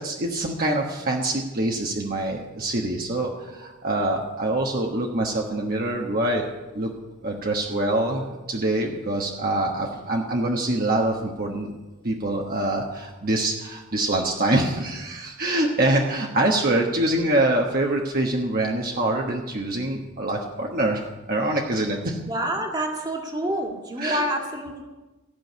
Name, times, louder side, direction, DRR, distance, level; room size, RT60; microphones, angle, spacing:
voice 1, 0.0-6.9 7.2-11.8 12.0-22.2 24.0-24.2, right 1 dB, 45° right, 0 dB, 1.3 m, -25 dB
voice 2, 22.3-24.8, right 1 dB, 20° right, 1 dB, 2.0 m, -28 dB
15.5 x 6.3 x 9.3 m, 1.1 s
head